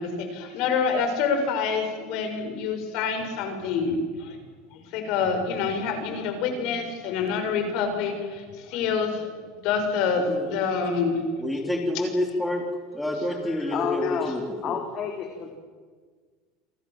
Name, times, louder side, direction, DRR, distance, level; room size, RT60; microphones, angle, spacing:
voice 1, 0.0-4.4 4.9-9.3 9.6-11.2 13.1-13.7, left 5 dB, 60° left, 6 dB, 6.7 m, -27 dB
voice 2, 11.4-12.6 12.9-14.7, left 1 dB, 5° left, 3 dB, 3.8 m, -28 dB
voice 3, 13.7-14.3 14.6-15.6, left 7 dB, 45° left, 4 dB, 3.4 m, -29 dB
28.5 x 22.5 x 7.7 m, 1.5 s
supercardioid pair, 125°, 0 cm